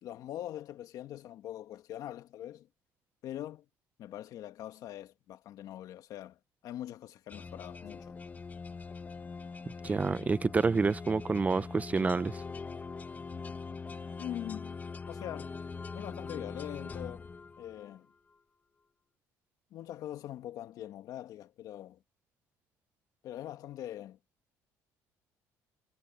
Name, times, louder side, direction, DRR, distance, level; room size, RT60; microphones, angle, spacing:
voice 1, 0.0-2.7 3.2-3.6 4.0-8.2 14.2-14.8 15.1-15.5 15.9-17.3 17.6-18.1 19.7-22.0 23.2-24.2, left 12 dB, 65° left, 2.3 m, -43 dB
sound 1, 7.3-18.0, left 4 dB, 25° left, 1.2 m, -42 dB
voice 2, 9.8-12.4, right 4 dB, 20° right, 0.7 m, -28 dB
cardioid pair, 105°, 7 cm